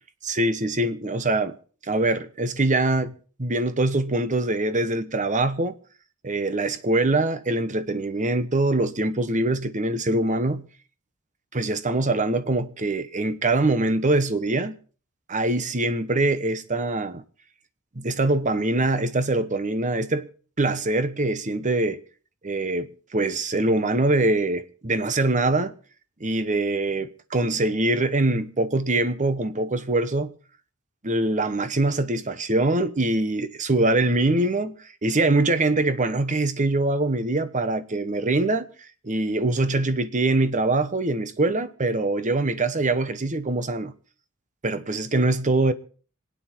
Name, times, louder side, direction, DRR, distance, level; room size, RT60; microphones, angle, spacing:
voice 1, 0.2-1.6 1.9-3.1 3.4-5.8 6.2-10.7 11.5-14.8 15.3-17.2 18.0-20.3 20.6-22.0 22.4-25.7 26.2-30.3 31.0-34.8 35.0-38.7 39.0-43.9 44.6-45.7, right 2 dB, 35° right, 1.0 m, -23 dB
26.0 x 9.5 x 4.4 m
head